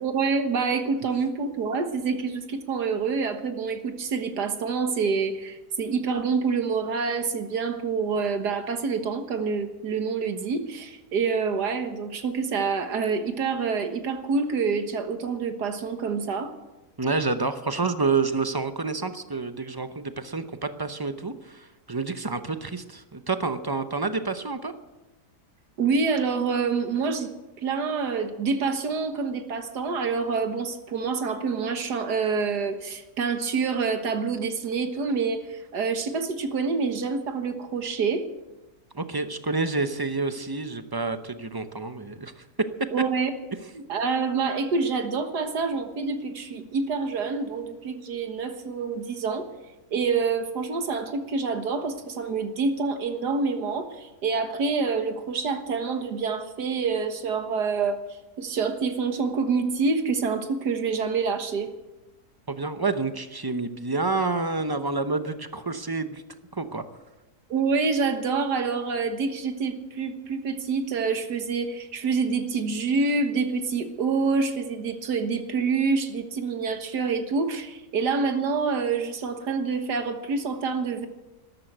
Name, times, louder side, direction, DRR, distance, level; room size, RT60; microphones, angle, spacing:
voice 1, 0.0-16.5 25.8-27.3 27.6-38.2 42.9-43.3 43.7-49.5 49.9-58.0 58.4-61.7 67.5-81.1, right 5 dB, 85° right, 7 dB, 2.0 m, -27 dB
voice 2, 17.0-24.7 38.9-42.3 62.5-66.2 66.5-66.8, right 3 dB, 25° right, 10 dB, 0.4 m, -28 dB
13.0 x 13.0 x 8.0 m, 1.0 s
omnidirectional pair, 1.7 m